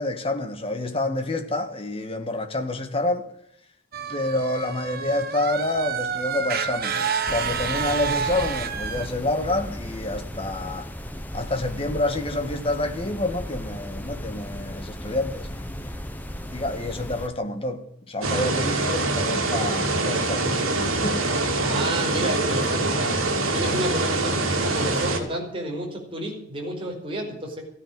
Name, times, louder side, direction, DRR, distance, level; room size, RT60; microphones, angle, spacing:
voice 1, 0.0-3.3 4.1-10.9 11.3-15.9 16.5-21.3, left 2 dB, 25° left, 1.6 m, -28 dB
sound 1, 3.9-9.1, right 6 dB, 45° right, 1.2 m, -29 dB
sound 2, 7.3-17.3, equal, 10° left, 1.1 m, -36 dB
sound 3, 18.2-25.2, right 2 dB, 80° right, 3.0 m, -24 dB
voice 2, 21.6-23.1 23.5-27.6, right 1 dB, 25° right, 4.8 m, -30 dB
15.0 x 9.6 x 8.8 m
head